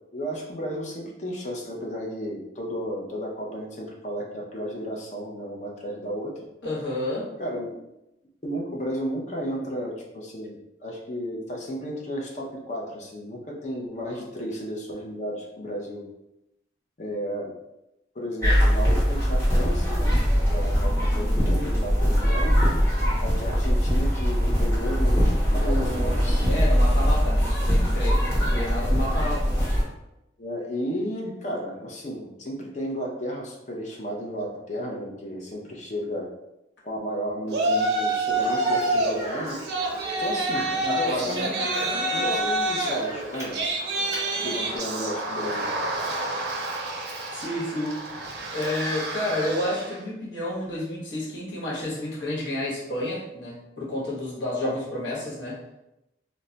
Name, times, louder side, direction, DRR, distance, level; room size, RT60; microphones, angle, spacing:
voice 1, 0.1-6.4 7.4-7.7 8.4-10.6 10.8-16.0 17.0-17.5 18.1-20.2 20.5-22.7 23.2-26.5 28.5-28.6 30.4-36.3 36.8-39.6 40.2-41.6 41.8-43.6 44.4-45.7 54.6-54.7, equal, 40° left, 0 dB, 0.5 m, -33 dB
voice 2, 6.6-7.3 25.5-29.5 40.8-41.3 47.3-48.0 48.5-55.6, left 1 dB, 85° left, -5 dB, 1.1 m, -30 dB
sound 1, 18.4-29.8, equal, 15° left, 0.9 m, -22 dB
Yell, 37.5-39.2 39.5-49.9, right 2 dB, 65° right, 0.4 m, -28 dB
Speech, 38.3-44.8, right 1 dB, 15° right, 0.7 m, -35 dB
2.2 x 2.1 x 3.8 m, 0.90 s
head